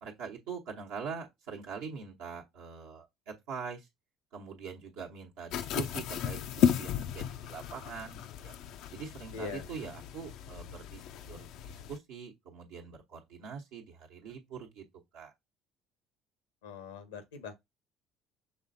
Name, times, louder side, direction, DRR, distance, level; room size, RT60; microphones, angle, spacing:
voice 1, 0.0-3.9 4.3-8.5 8.9-14.8 15.1-15.3, right 6 dB, 70° right, 1.0 m, -43 dB
sound 1, 5.5-12.0, left 9 dB, 65° left, 0.4 m, -34 dB
voice 2, 9.3-9.7 16.6-17.6, left 5 dB, 80° left, 0.9 m, -42 dB
5.9 x 3.2 x 2.6 m
hypercardioid pair, 60°, 0 cm